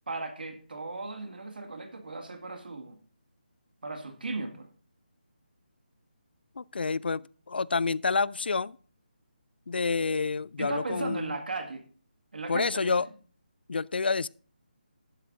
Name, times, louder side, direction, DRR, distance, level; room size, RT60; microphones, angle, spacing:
voice 1, 0.1-3.0 3.8-4.7 10.6-11.8 12.3-13.1, right 3 dB, 70° right, 1.9 m, -36 dB
voice 2, 6.6-8.8 9.7-11.3 12.5-13.1 13.7-14.3, left 4 dB, 85° left, 0.4 m, -28 dB
12.0 x 10.5 x 2.6 m
hypercardioid pair, 175°, 5 cm